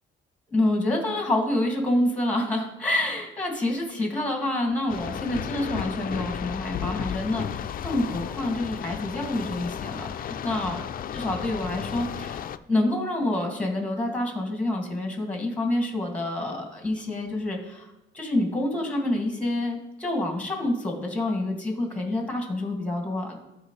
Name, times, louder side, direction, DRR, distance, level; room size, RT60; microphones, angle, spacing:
voice 1, 0.5-10.8 11.1-17.9 18.1-23.4, left 1 dB, 5° left, 1 dB, 2.2 m, -27 dB
sound 1, 4.9-12.6, left 9 dB, 45° left, 0.4 m, -33 dB
13.0 x 4.5 x 3.3 m, 1.0 s
cardioid pair, 90°, 20 cm